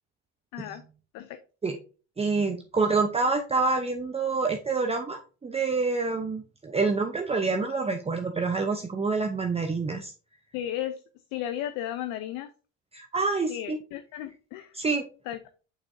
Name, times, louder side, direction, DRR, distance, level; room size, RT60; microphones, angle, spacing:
voice 1, 2.2-10.1 12.9-13.8 14.7-15.1, right 4 dB, 20° right, 4 dB, 0.7 m, -27 dB
voice 2, 10.5-11.0 11.3-12.5 13.5-14.7 15.3-15.4, left 11 dB, 70° left, 10 dB, 0.7 m, -34 dB
6.7 x 6.0 x 2.6 m, 0.36 s
supercardioid pair, 90°, 34 cm